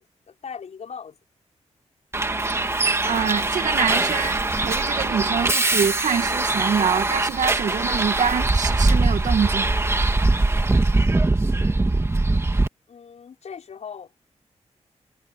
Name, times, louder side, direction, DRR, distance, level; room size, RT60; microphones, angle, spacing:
voice 1, 0.3-1.2 12.9-14.1, left 6 dB, 70° left, 5.8 m, -38 dB
Bus, 2.1-12.7, right 2 dB, 20° right, 2.3 m, -22 dB
voice 2, 3.0-9.8, right 7 dB, 85° right, 2.3 m, -25 dB
wide cardioid pair, 105°, 12 cm